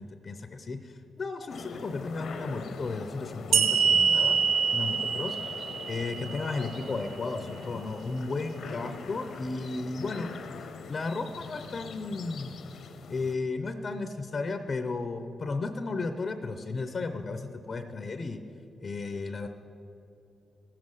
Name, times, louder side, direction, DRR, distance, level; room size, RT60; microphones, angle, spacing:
voice 1, 0.0-4.4 4.7-5.5 5.9-10.3 10.9-12.6 13.1-18.4 18.8-19.5, left 3 dB, 35° left, 7 dB, 0.5 m, -34 dB
sound 1, 1.5-13.4, left 5 dB, 70° left, 0.8 m, -42 dB
sound 2, 3.5-6.9, right 6 dB, 75° right, 0.5 m, -25 dB
15.0 x 7.5 x 6.3 m, 3.0 s
wide cardioid pair, 165°, 0 cm